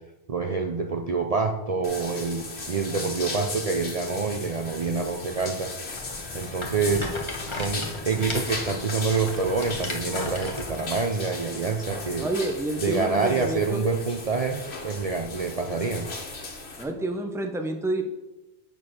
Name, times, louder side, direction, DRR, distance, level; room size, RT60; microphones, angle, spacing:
voice 1, 0.3-5.7 6.3-7.1 7.5-12.3 12.8-16.1, right 4 dB, 45° right, 3 dB, 0.6 m, -27 dB
sound 1, 1.8-16.8, left 3 dB, 85° left, 1.6 m, -37 dB
Rattle, 5.9-11.0, left 2 dB, 30° left, 1.4 m, -36 dB
voice 2, 12.2-13.8 16.8-18.0, right 1 dB, 5° right, 4 dB, 0.7 m, -29 dB
8.2 x 4.6 x 6.4 m, 1.0 s
omnidirectional pair, 1.1 m